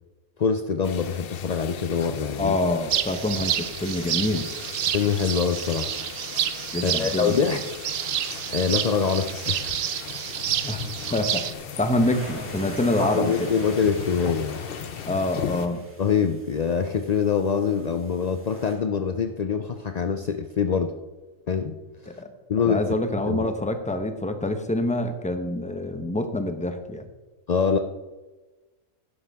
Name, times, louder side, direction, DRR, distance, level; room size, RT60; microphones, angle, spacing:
voice 1, 0.4-2.5 4.9-5.9 6.8-7.6 8.5-9.8 13.0-14.6 16.0-20.9 21.5-22.2 22.5-22.9 23.3-23.5 27.5-27.8, left 6 dB, 70° left, 7 dB, 0.3 m, -24 dB
sound 1, 0.8-15.7, left 8 dB, 55° left, 0.8 m, -38 dB
voice 2, 2.4-4.5 6.7-7.4 10.6-13.5 15.1-15.8 22.1-22.3 22.6-27.1, left 1 dB, 5° left, 7 dB, 0.7 m, -26 dB
sound 2, 2.9-11.5, right 10 dB, 60° right, 0.7 m, -29 dB
sound 3, 7.8-18.7, equal, 10° right, 2.5 m, -44 dB
12.0 x 11.0 x 3.6 m, 1.2 s
omnidirectional pair, 1.4 m